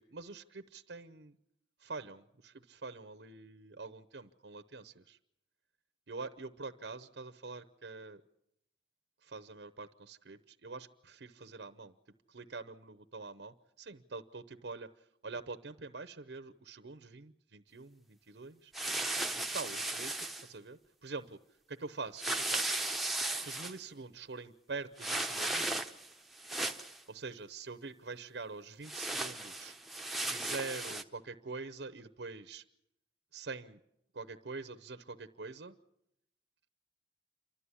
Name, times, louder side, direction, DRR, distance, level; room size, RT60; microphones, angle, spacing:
voice 1, 0.0-1.4 1.8-5.2 6.1-8.2 9.2-11.9 12.3-18.7 19.3-21.4 21.7-22.8 23.4-25.7 27.1-29.7 30.3-32.6 33.3-33.8 34.1-35.8, right 4 dB, 75° right, 11 dB, 0.8 m, -45 dB
sound 1, 18.7-20.5 22.2-23.8 25.0-26.1 26.4-27.0 28.8-31.0, right 2 dB, ahead, 1.0 m, -36 dB
28.5 x 13.0 x 9.8 m, 0.81 s
head